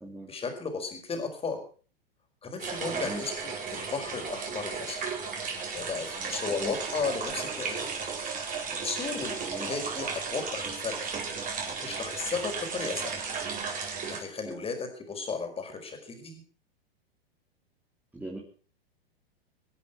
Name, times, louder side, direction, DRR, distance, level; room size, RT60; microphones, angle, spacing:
voice 1, 0.3-1.6 2.4-5.0 5.7-7.9 8.6-11.0 11.4-13.2 14.1-16.4, left 4 dB, 20° left, 4 dB, 5.0 m, -35 dB
sound 1, 2.6-14.2, right 5 dB, 25° right, 4.7 m, -35 dB
voice 2, 2.9-3.2 6.6-6.7 9.5-9.7 14.4-14.6 18.1-18.4, right 1 dB, 5° right, -1 dB, 3.1 m, -39 dB
24.0 x 8.3 x 5.7 m, 0.40 s
hypercardioid pair, 110°, 31 cm